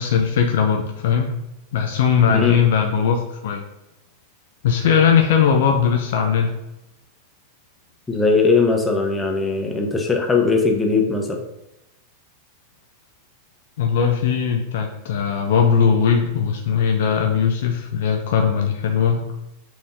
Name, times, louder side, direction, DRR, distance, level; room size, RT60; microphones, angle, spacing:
voice 1, 0.0-1.3 1.7-3.6 4.6-6.5 13.8-19.3, left 7 dB, 55° left, 3 dB, 0.7 m, -19 dB
voice 2, 8.1-11.4, left 4 dB, 10° left, 1 dB, 1.2 m, -19 dB
7.0 x 4.2 x 3.8 m, 0.89 s
figure-of-eight pair, 90°, 0 cm